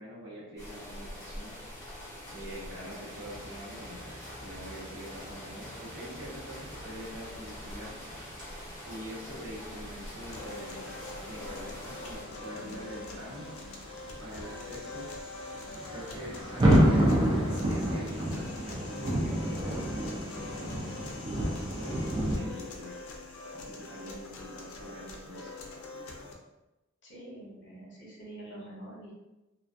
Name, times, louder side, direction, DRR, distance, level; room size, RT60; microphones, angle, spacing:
voice 1, 0.0-1.5 2.3-7.9 8.9-10.8 11.3-13.6 14.2-15.1 15.9-21.1 21.8-22.9 23.5-25.5, equal, 75° right, -6 dB, 0.9 m, -44 dB
sound 1, 0.6-12.2, left 1 dB, 15° left, 0.6 m, -45 dB
sound 2, 3.1-22.4, equal, 20° right, 0.4 m, -32 dB
sound 3, 10.3-26.3, left 3 dB, 90° left, 0.4 m, -44 dB
voice 2, 27.0-29.1, right 1 dB, 55° left, -5 dB, 0.8 m, -46 dB
2.3 x 2.2 x 2.5 m, 1.0 s
head